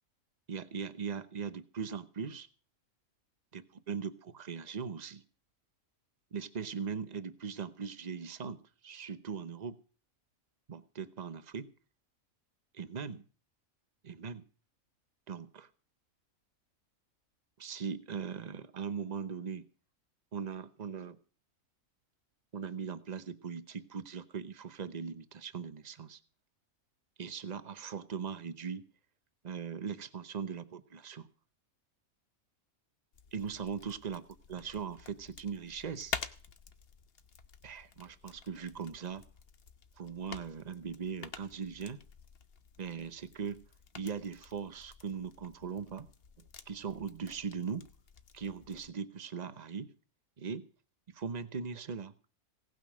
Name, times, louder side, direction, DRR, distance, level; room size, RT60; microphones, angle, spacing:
voice 1, 0.5-2.5 3.5-5.2 6.3-9.8 10.7-11.7 12.7-13.2 14.0-14.4 15.3-15.7 17.6-19.7 20.3-21.2 22.5-26.2 27.2-28.9 29.4-31.3 33.3-34.2 34.5-36.1 37.6-39.2 40.0-42.0 42.8-43.6 43.9-46.1 46.7-47.9 48.3-49.9 50.4-50.7 51.1-52.1, right 6 dB, 35° right, 13 dB, 0.9 m, -40 dB
sound 1, 33.1-48.9, left 6 dB, 50° left, 1.1 m, -49 dB
17.5 x 9.3 x 6.2 m, 0.38 s
omnidirectional pair, 1.4 m